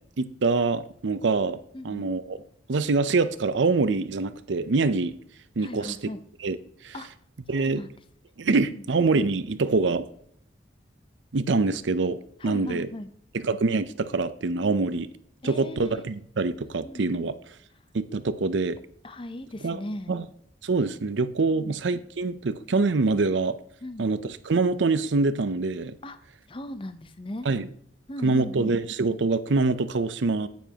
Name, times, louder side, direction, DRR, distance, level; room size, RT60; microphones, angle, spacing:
voice 1, 0.2-1.6 1.8-2.4 2.7-5.2 5.6-6.1 6.4-6.6 6.8-7.0 7.5-7.8 8.4-10.1 11.3-12.9 13.3-15.1 15.4-17.4 17.9-18.8 19.6-19.8 20.1-20.3 20.6-23.6 24.0-26.0 27.4-27.7 28.2-30.5, right 3 dB, 75° right, 13 dB, 0.6 m, -25 dB
voice 2, 1.7-2.1 5.6-6.2 6.9-7.1 7.5-7.9 8.5-8.8 12.4-13.1 15.4-16.0 16.6-17.3 19.0-20.1 21.5-21.8 23.8-24.1 26.0-26.2 26.5-27.5 28.1-28.7, left 1 dB, 30° left, 11 dB, 0.6 m, -38 dB
9.3 x 9.2 x 2.9 m, 0.68 s
head